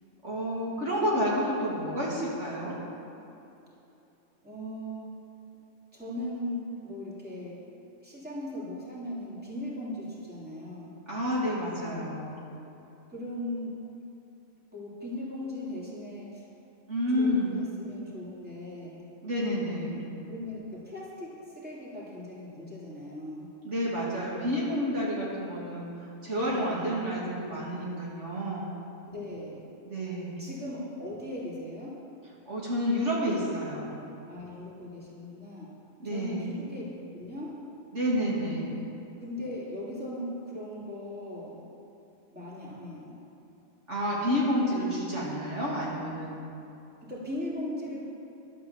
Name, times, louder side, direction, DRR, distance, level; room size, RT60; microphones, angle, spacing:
voice 1, 0.2-2.8 11.1-12.5 16.9-17.6 19.2-20.1 23.6-25.8 26.2-28.8 29.9-30.4 32.5-33.9 36.0-36.5 37.9-38.8 43.9-46.4, equal, 55° right, -6 dB, 2.6 m, -30 dB
voice 2, 4.4-5.1 5.9-7.6 8.0-11.0 13.1-13.8 14.7-16.4 17.2-19.1 20.3-23.5 26.3-26.9 29.1-29.7 30.4-32.0 34.3-35.7 36.0-36.8 37.1-37.6 39.2-41.6 42.3-43.2 47.0-48.0, left 1 dB, 5° right, -7 dB, 3.0 m, -38 dB
12.0 x 9.5 x 7.1 m, 2.9 s
omnidirectional pair, 1.5 m